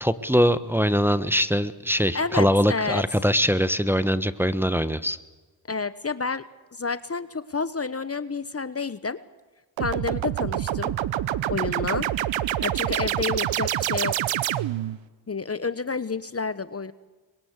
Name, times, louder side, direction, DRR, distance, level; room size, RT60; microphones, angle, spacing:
voice 1, 0.0-5.2, equal, 5° right, 11 dB, 1.2 m, -22 dB
voice 2, 2.1-3.0 5.7-6.4 6.7-9.2 9.8-10.9 11.5-12.1 12.6-14.3 15.3-16.9, left 4 dB, 30° left, 14 dB, 1.1 m, -29 dB
sound 1, 9.8-15.0, right 12 dB, 70° right, 0.9 m, -26 dB
25.0 x 22.0 x 8.2 m, 1.3 s
supercardioid pair, 45°, 47 cm